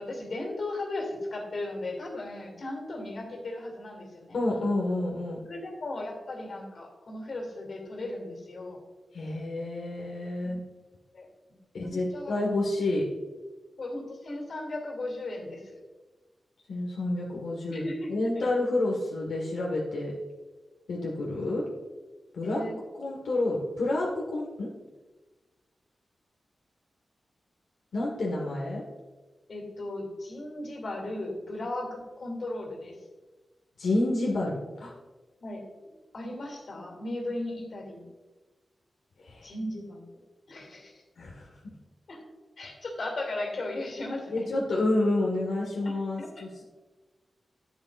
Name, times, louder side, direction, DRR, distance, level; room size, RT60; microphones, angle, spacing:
voice 1, 0.0-4.4 5.5-8.8 11.1-11.3 11.8-12.3 13.8-15.8 17.7-18.5 22.4-22.7 29.5-33.0 35.4-35.6 36.1-38.1 39.4-40.0 40.5-40.9 42.1-42.2 42.6-44.6 45.8-46.5, left 2 dB, 60° left, 1 dB, 2.8 m, -36 dB
voice 2, 4.3-5.4 9.1-10.6 11.7-13.0 16.7-17.8 18.1-20.1 20.9-21.6 22.3-22.6 23.0-24.7 27.9-28.8 33.8-34.9 39.2-39.5 41.2-41.5 44.3-46.6, left 2 dB, 85° left, -3 dB, 1.6 m, -29 dB
12.0 x 11.0 x 2.6 m, 1.2 s
wide cardioid pair, 120°, 0 cm